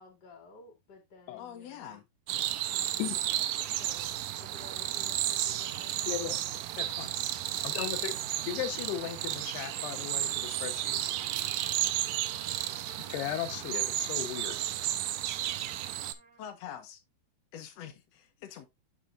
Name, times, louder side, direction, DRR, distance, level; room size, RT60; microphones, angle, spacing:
voice 1, 0.0-2.0 2.6-7.0 8.0-8.7, left 3 dB, 30° left, 2.7 m, -54 dB
voice 2, 1.4-2.0 16.4-17.0 17.5-18.7, left 9 dB, 60° left, 1.9 m, -44 dB
sound 1, 2.3-16.1, right 13 dB, 85° right, 1.9 m, -33 dB
voice 3, 6.1-6.4 6.8-7.1 7.6-8.1 8.5-11.0 13.1-14.6, left 12 dB, 80° left, 3.1 m, -36 dB
Trumpet, 9.2-16.5, right 2 dB, 30° right, 2.1 m, -56 dB
8.8 x 6.6 x 2.5 m
omnidirectional pair, 4.7 m